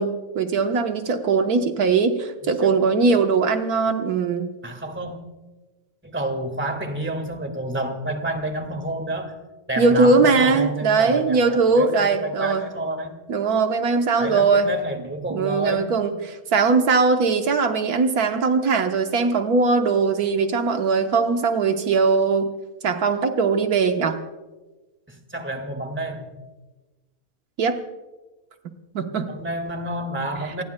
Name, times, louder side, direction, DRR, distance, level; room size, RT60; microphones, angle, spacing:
voice 1, 0.0-4.5 9.8-12.6 13.3-14.7 15.3-16.1 16.5-22.5 22.8-24.2 27.6-27.8 28.9-29.3, right 4 dB, 80° right, 6 dB, 1.5 m, -20 dB
voice 2, 2.4-3.2 4.6-5.2 6.0-9.4 9.7-13.1 14.2-15.9 25.1-26.3 29.3-30.6, right 1 dB, 10° right, 5 dB, 1.7 m, -29 dB
28.5 x 19.0 x 2.2 m, 1.2 s
omnidirectional pair, 1.6 m